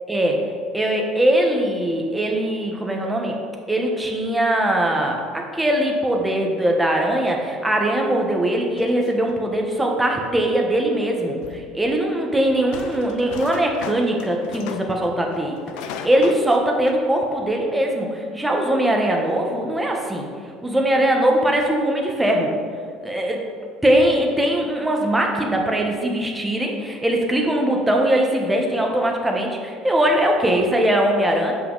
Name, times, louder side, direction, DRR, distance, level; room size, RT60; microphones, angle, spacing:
voice 1, 0.1-0.4 0.7-3.4 3.7-20.3 20.6-22.5 23.0-23.4 23.8-31.5, right 1 dB, 10° right, 0 dB, 1.2 m, -21 dB
sound 1, 8.6-9.4 11.4-11.7 12.5-15.0 15.3-16.6 16.9-17.0, left 7 dB, 80° left, 0.5 m, -36 dB
7.4 x 5.5 x 4.0 m, 2.1 s
supercardioid pair, 105°, 0 cm